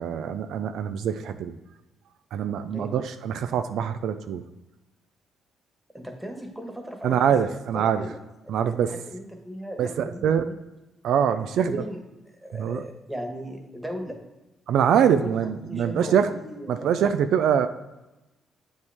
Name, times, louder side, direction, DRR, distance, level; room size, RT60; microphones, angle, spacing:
voice 1, 0.0-1.5 2.3-4.4 7.0-8.1 8.5-9.0 9.8-10.5 11.0-11.8 12.5-12.8 14.7-16.3 16.7-17.7, right 8 dB, 75° right, 9 dB, 0.4 m, -24 dB
voice 2, 5.9-7.3 7.7-8.1 8.4-10.5 11.3-12.0 12.3-14.2 15.2-15.3 15.7-17.0, equal, 5° right, 3 dB, 1.4 m, -37 dB
8.0 x 5.2 x 3.5 m, 1.0 s
cardioid pair, 90°, 0 cm